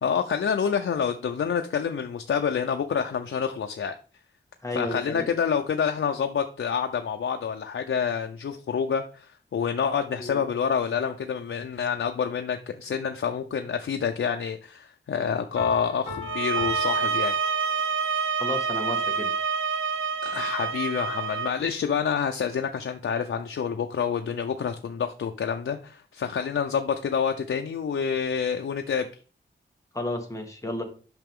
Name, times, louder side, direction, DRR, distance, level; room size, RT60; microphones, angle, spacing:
voice 1, 0.0-3.9 4.7-17.4 20.2-29.1, left 7 dB, 85° left, 5 dB, 0.6 m, -28 dB
voice 2, 4.6-5.3 10.2-10.4 18.4-19.3 29.9-30.8, left 2 dB, 15° left, 2 dB, 1.7 m, -32 dB
Piano, 15.6-18.1, left 4 dB, 10° right, 4.7 m, -39 dB
sound 1, 16.2-21.6, right 5 dB, 85° right, 0.6 m, -27 dB
8.9 x 5.9 x 3.6 m, 0.38 s
wide cardioid pair, 110°, 20 cm